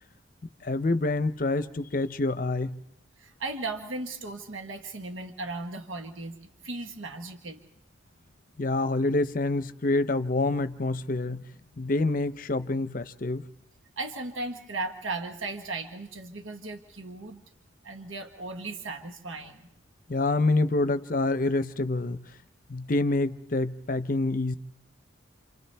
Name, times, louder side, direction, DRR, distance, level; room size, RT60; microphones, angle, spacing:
voice 1, 0.6-2.8 8.6-11.4 11.8-13.5 20.1-22.2 22.7-24.6, left 2 dB, 45° left, 0.7 m, -27 dB
voice 2, 3.2-6.4 6.6-7.6 14.0-17.4 17.8-19.7, right 3 dB, 85° right, 1.4 m, -36 dB
28.5 x 27.0 x 3.4 m
head